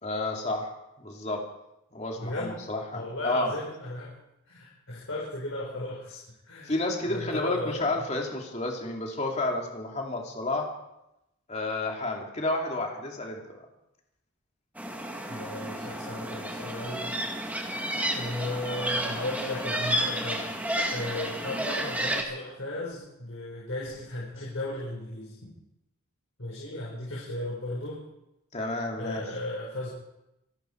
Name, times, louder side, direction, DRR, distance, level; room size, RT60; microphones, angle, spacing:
voice 1, 0.0-0.7 1.0-1.5 1.9-3.5 6.6-10.7 11.5-13.7 28.5-29.2, left 2 dB, 30° left, 0 dB, 2.8 m, -31 dB
voice 2, 2.2-2.6 2.9-4.1 4.5-6.2 6.4-6.7 7.0-8.0 15.3-17.1 18.1-20.5 20.9-25.4 26.4-28.0 29.0-29.9, left 1 dB, 70° left, -5 dB, 5.0 m, -35 dB
sound 1, 14.8-22.2, right 1 dB, 5° right, 2.0 m, -31 dB
26.5 x 11.5 x 4.7 m, 0.88 s
head